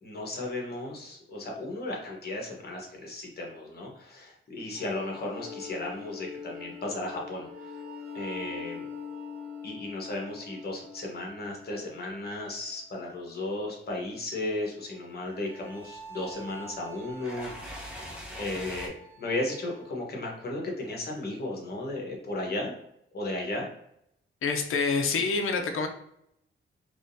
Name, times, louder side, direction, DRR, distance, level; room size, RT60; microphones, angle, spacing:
voice 1, 0.0-7.7 8.1-8.8 9.6-18.0 18.4-22.7 23.1-23.7, left 2 dB, 50° left, -1 dB, 1.1 m, -35 dB
sound 1, 4.7-12.7 14.6-19.9, left 3 dB, 85° right, 1.0 m, -44 dB
sound 2, 15.8-18.9, equal, 5° right, 0.8 m, -43 dB
voice 2, 24.4-25.9, left 4 dB, 80° left, 5 dB, 0.7 m, -27 dB
3.6 x 3.1 x 2.6 m, 0.77 s
wide cardioid pair, 145°, 21 cm